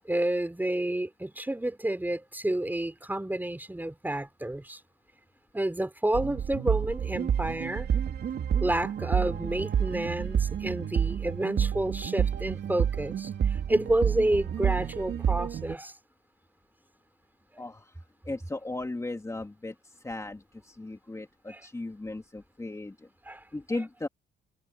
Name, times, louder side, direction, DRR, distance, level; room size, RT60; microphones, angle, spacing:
voice 1, 0.1-4.8 5.5-7.9 8.6-15.9 17.5-17.6 21.5-21.6 23.3-23.4, right 1 dB, 10° right, 4.1 m, -30 dB
sound 1, 6.1-15.7, right 8 dB, 60° right, 2.7 m, -29 dB
voice 2, 17.6-18.0 18.2-23.1 23.5-24.1, left 2 dB, 15° left, 2.6 m, -37 dB
cardioid pair, 90°, 20 cm